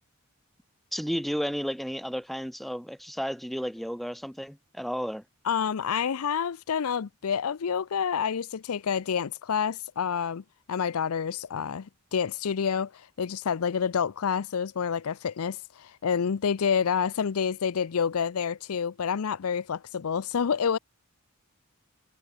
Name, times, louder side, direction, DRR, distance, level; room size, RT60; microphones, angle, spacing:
voice 1, 0.9-5.2, equal, ahead, 1.7 m, -32 dB
voice 2, 5.4-10.4 10.7-12.9 13.2-20.8, left 7 dB, 80° left, 0.5 m, -28 dB
head